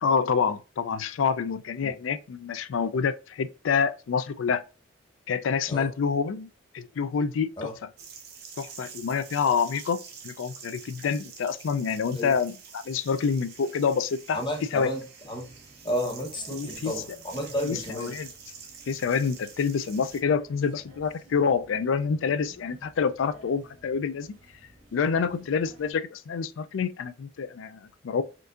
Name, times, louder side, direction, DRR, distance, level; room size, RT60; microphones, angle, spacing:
voice 1, 0.0-4.6 5.3-6.5 6.7-7.7 8.6-14.4 14.7-14.9 16.5-16.9 17.6-18.3 18.9-24.4 24.9-28.2, left 6 dB, 85° left, 0.4 m, -27 dB
sound 1, 8.0-20.2, right 6 dB, 60° right, 0.7 m, -46 dB
voice 2, 14.3-15.4 15.8-18.2, equal, 25° left, 1.0 m, -32 dB
sound 2, 15.2-25.9, equal, 75° right, 1.6 m, -56 dB
4.4 x 2.5 x 2.4 m
head